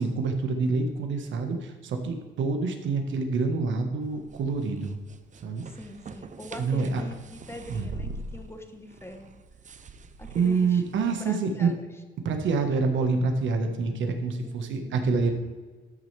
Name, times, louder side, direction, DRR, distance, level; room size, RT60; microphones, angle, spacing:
voice 1, 0.0-5.0 5.4-5.6 6.6-7.0 7.7-7.8 10.3-11.7 12.2-15.3, right 4 dB, 70° right, 5 dB, 1.4 m, -26 dB
sound 1, 4.0-11.4, right 3 dB, 40° right, 0.7 m, -43 dB
voice 2, 5.6-9.3 10.2-10.8 11.2-11.8 14.4-15.0, left 2 dB, 10° left, 5 dB, 1.3 m, -43 dB
13.0 x 6.6 x 3.4 m, 1.4 s
cardioid pair, 90°, 20 cm